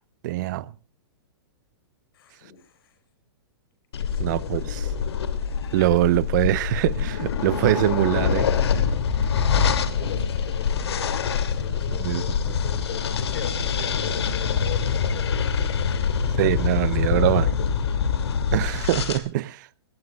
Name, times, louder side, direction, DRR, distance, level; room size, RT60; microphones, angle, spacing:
voice 1, 0.2-0.7 4.2-4.9 5.7-8.5 11.9-12.2 16.4-17.5 18.5-19.7, right 16 dB, 45° right, 0.8 m, -23 dB
voice 2, 2.1-2.9 4.0-5.1 10.0-16.2 16.8-17.9, left 7 dB, 60° left, 4.8 m, -40 dB
sound 1, 3.9-19.2, left 6 dB, 80° left, 2.6 m, -25 dB
21.5 x 17.5 x 2.4 m
hypercardioid pair, 145°, 13 cm